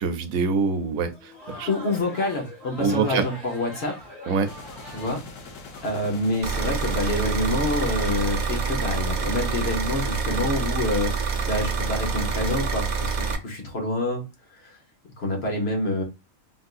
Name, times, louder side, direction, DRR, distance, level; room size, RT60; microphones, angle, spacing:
voice 1, 0.0-1.7 2.8-3.2 4.3-4.5, right 5 dB, 85° right, 1.0 m, -25 dB
Crowd, 1.0-5.9, equal, 30° left, 1.4 m, -42 dB
voice 2, 1.7-3.9 4.9-5.2 5.8-11.1 11.5-14.2 14.6-14.8 15.2-16.0, left 2 dB, 55° left, 1.1 m, -27 dB
sound 1, 4.4-9.3, left 4 dB, 75° left, 1.1 m, -43 dB
sound 2, 6.4-13.4, right 5 dB, 60° right, 0.4 m, -27 dB
3.7 x 2.5 x 2.4 m
omnidirectional pair, 1.4 m